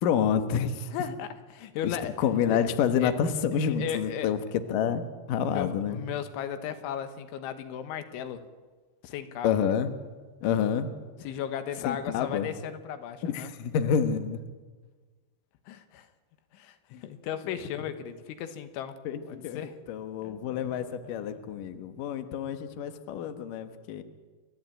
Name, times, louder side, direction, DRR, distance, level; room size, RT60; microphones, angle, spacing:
voice 1, 0.0-0.9 1.8-4.4 4.7-6.0 9.4-9.9 10.4-10.9 11.8-12.5 13.2-14.4 19.1-19.6 19.9-24.0, left 8 dB, 65° left, 8 dB, 2.3 m, -28 dB
voice 2, 0.9-2.2 2.5-2.6 3.0-3.1 3.8-4.3 5.5-8.4 9.0-9.5 11.2-13.5 15.7-16.1 16.5-19.0 19.3-19.8 20.2-21.4, left 9 dB, 90° left, 9 dB, 3.7 m, -36 dB
29.0 x 13.5 x 8.8 m, 1.4 s
omnidirectional pair, 5.3 m